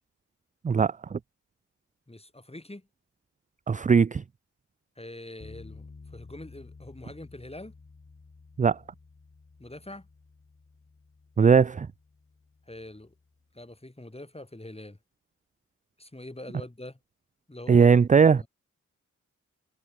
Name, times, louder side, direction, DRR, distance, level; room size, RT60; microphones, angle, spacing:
voice 1, 0.6-1.2 3.7-4.2 8.6-8.8 11.4-11.9 17.7-18.4, right 6 dB, 25° right, 0.4 m, -19 dB
voice 2, 2.1-2.9 5.0-7.7 9.6-10.1 12.7-13.1 13.5-15.0 16.0-17.0 17.5-18.5, left 1 dB, 20° left, 7.6 m, -44 dB
sound 1, 5.4-13.6, left 4 dB, 40° left, 3.1 m, -52 dB
supercardioid pair, 40°, 33 cm